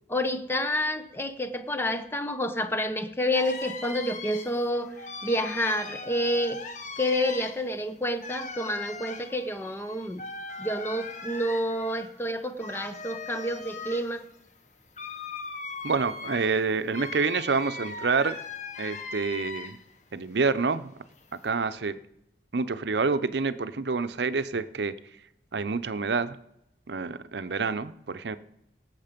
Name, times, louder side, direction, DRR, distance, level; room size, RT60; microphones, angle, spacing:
voice 1, 0.1-6.6 7.0-10.2 10.6-14.2, left 1 dB, 15° left, 9 dB, 0.8 m, -29 dB
sound 1, 3.3-20.0 20.3-21.5, left 4 dB, 40° left, 1.1 m, -40 dB
voice 2, 15.8-18.4 18.8-19.8 20.1-20.9 21.4-22.0 22.5-24.9 25.5-26.4 26.9-28.4, right 4 dB, 75° right, 13 dB, 0.7 m, -27 dB
17.5 x 7.4 x 5.2 m, 0.81 s
head